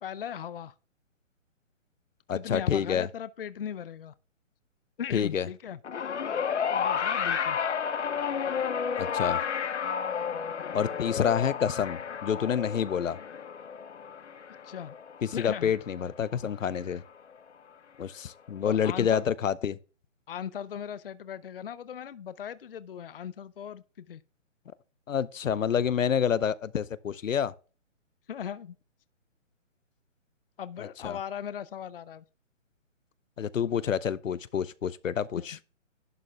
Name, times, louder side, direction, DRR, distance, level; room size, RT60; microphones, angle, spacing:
voice 1, 0.0-0.7 2.3-4.1 5.0-5.8 6.7-7.6 14.6-14.9 15.3-15.7 18.6-19.3 20.3-24.2 28.3-28.8 30.6-32.2 35.4-35.5, left 9 dB, 45° left, 0.5 m, -38 dB
voice 2, 2.3-3.1 5.1-5.5 9.0-9.4 10.7-13.2 15.2-17.0 18.0-19.8 25.1-27.5 30.8-31.2 33.4-35.6, left 8 dB, 85° left, 0.8 m, -28 dB
sound 1, 5.8-16.3 17.3-17.4, left 7 dB, 65° left, 1.1 m, -32 dB
11.0 x 6.3 x 3.3 m
hypercardioid pair, 160°, 38 cm